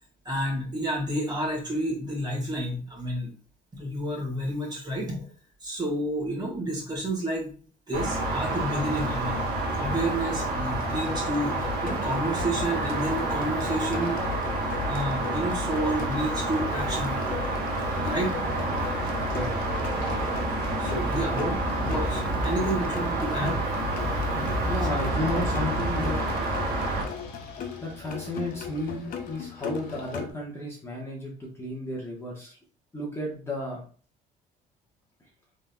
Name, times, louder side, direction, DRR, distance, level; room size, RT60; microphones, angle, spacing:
voice 1, 0.3-3.3 3.7-5.2 5.6-7.5 7.9-9.5 9.8-14.2 14.8-17.2 18.0-18.4 20.8-21.6 21.8-23.6 24.1-24.5, right 1 dB, 25° right, -2 dB, 1.7 m, -30 dB
sound 1, 7.9-27.0, right 2 dB, 65° right, 1.5 m, -29 dB
sound 2, 10.8-30.3, left 6 dB, 55° left, 0.7 m, -39 dB
sound 3, 17.9-30.2, equal, 90° left, 1.1 m, -35 dB
voice 2, 24.6-26.2 27.8-32.6 32.9-33.8, left 1 dB, 15° left, -4 dB, 1.2 m, -33 dB
3.8 x 3.6 x 2.3 m, 0.41 s
cardioid pair, 110°, 17 cm